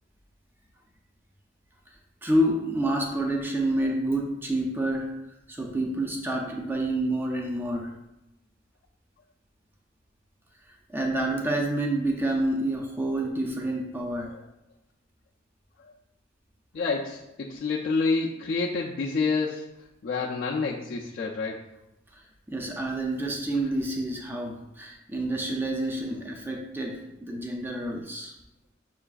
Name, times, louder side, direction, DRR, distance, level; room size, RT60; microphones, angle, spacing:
voice 1, 2.2-5.2 5.5-7.9 10.9-14.3 22.5-28.3, right 1 dB, 10° right, 0 dB, 0.4 m, -28 dB
voice 2, 16.7-19.7 20.0-21.6, left 4 dB, 55° left, -3 dB, 0.4 m, -28 dB
5.7 x 2.4 x 2.3 m, 0.90 s
head